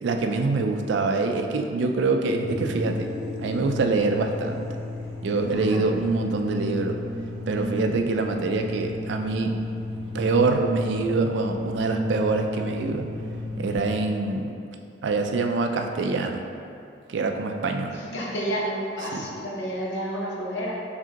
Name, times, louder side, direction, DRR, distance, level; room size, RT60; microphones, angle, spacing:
voice 1, 0.0-3.1 3.4-4.6 5.2-7.0 7.5-9.6 10.1-13.1 13.6-14.6 15.0-16.5 17.1-18.0 19.1-19.3, right 3 dB, 65° right, 5 dB, 0.3 m, -25 dB
sound 1, 2.4-13.8, left 2 dB, ahead, 1.1 m, -33 dB
voice 2, 5.5-5.8 17.9-20.7, equal, 65° left, -4 dB, 0.8 m, -30 dB
4.9 x 3.4 x 2.9 m, 2.5 s
head